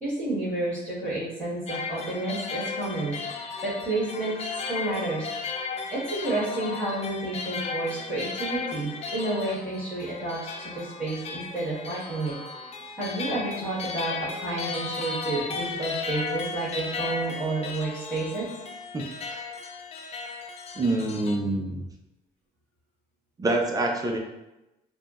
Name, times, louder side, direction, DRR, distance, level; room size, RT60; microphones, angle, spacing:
voice 1, 0.0-4.3 4.7-5.3 5.9-12.3 13.0-18.5, right 2 dB, 5° left, -10 dB, 1.4 m, -30 dB
sound 1, 1.7-21.4, left 4 dB, 40° left, 0.4 m, -35 dB
voice 2, 18.9-19.4 20.8-21.9 23.4-24.2, right 2 dB, 20° right, 1 dB, 0.5 m, -26 dB
3.5 x 2.2 x 2.4 m, 0.97 s
cardioid pair, 110°, 17 cm